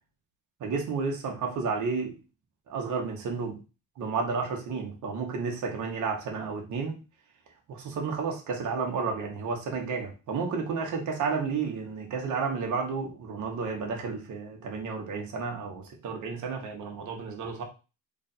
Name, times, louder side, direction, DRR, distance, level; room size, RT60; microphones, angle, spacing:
voice 1, 0.6-2.2 2.7-3.6 4.0-7.0 7.7-17.6, right 5 dB, 55° right, 1.1 m, -32 dB
3.2 x 2.5 x 4.0 m
cardioid pair, 130°, 36 cm